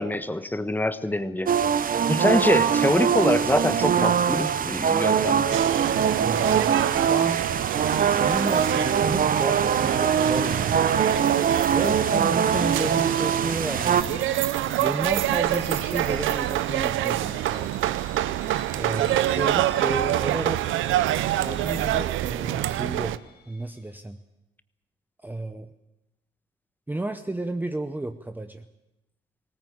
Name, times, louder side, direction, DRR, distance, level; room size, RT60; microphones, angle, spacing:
voice 1, 0.0-1.5 2.1-5.5, left 1 dB, 10° left, 12 dB, 1.2 m, -24 dB
sound 1, 1.5-14.0, right 7 dB, 45° right, 0.9 m, -22 dB
sound 2, 5.5-23.2, right 13 dB, 85° right, 0.7 m, -27 dB
voice 2, 6.2-7.5 8.1-11.1 11.7-14.3 14.8-17.9 18.8-20.6 21.4-23.2 23.5-24.2 25.2-25.7 26.9-28.7, right 2 dB, 10° right, 8 dB, 0.8 m, -32 dB
sound 3, 11.7-24.0, left 4 dB, 60° left, 4.4 m, -50 dB
20.0 x 17.5 x 8.6 m, 0.93 s
cardioid pair, 90°, 20 cm